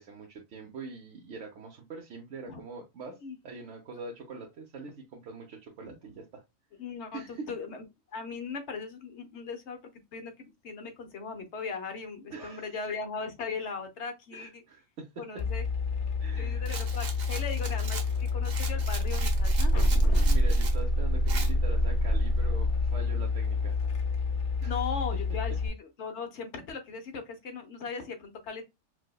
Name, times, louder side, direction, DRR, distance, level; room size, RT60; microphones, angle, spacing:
voice 1, 0.0-3.2 3.4-6.4 7.1-7.5 12.3-12.7 14.3-15.2 16.2-16.7 20.2-23.8 24.6-24.8, right 3 dB, 70° right, 1.0 m, -43 dB
voice 2, 5.8-6.1 6.8-7.8 8.1-9.8 10.1-14.6 15.2-15.7 16.4-20.3 24.6-28.6, left 5 dB, 65° left, 1.0 m, -38 dB
sound 1, 15.4-25.7, left 2 dB, 50° left, 0.8 m, -27 dB
Rattle, 16.7-20.8 21.3-21.5, right 5 dB, 50° right, 0.6 m, -40 dB
4.7 x 2.1 x 2.2 m
omnidirectional pair, 1.3 m